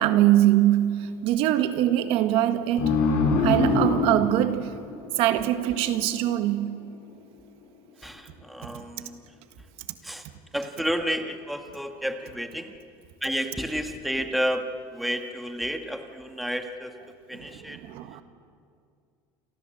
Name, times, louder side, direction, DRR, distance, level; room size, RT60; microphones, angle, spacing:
voice 1, 0.0-3.0 3.4-4.7 5.2-6.8 8.7-8.8 17.3-18.2, right 13 dB, 65° right, 1.6 m, -23 dB
sound 1, 2.8-5.9, left 3 dB, 75° left, 5.8 m, -24 dB
voice 2, 8.0-9.2 10.0-10.2 10.5-12.7 13.2-14.7 14.9-16.9 17.3-17.8, equal, ahead, 1.7 m, -31 dB
29.0 x 23.5 x 7.8 m
cardioid pair, 145°, 10 cm